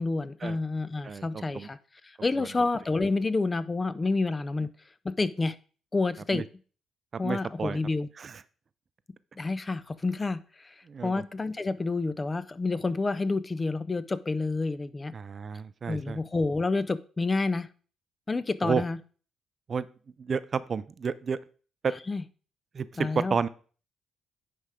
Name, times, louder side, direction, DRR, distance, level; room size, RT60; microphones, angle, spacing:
voice 1, 0.0-1.8 2.0-4.7 5.0-5.5 5.9-6.4 7.2-8.1 9.4-10.7 11.0-15.1 15.9-17.7 18.3-19.0 22.1-22.2 23.0-23.3, left 3 dB, 25° left, 15 dB, 0.5 m, -29 dB
voice 2, 1.0-1.7 2.4-2.5 6.3-6.4 7.2-7.8 8.2-8.3 10.9-11.1 15.1-16.2 18.6-18.8 19.7-19.9 20.2-21.4 21.8-21.9 22.7-23.5, right 5 dB, 45° right, 16 dB, 0.4 m, -31 dB
9.8 x 3.5 x 4.9 m, 0.40 s
cardioid pair, 90°, 0 cm